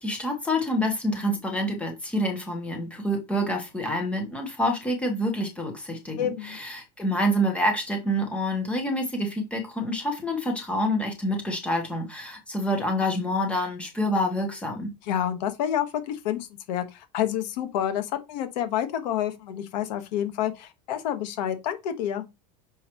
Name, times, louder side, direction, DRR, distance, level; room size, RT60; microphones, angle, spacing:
voice 1, 0.0-14.9, equal, 5° left, 1.2 m, -27 dB
voice 2, 6.2-6.6 15.0-22.2, left 10 dB, 90° left, 1.4 m, -29 dB
6.3 x 5.0 x 3.0 m
cardioid pair, 175°, 21 cm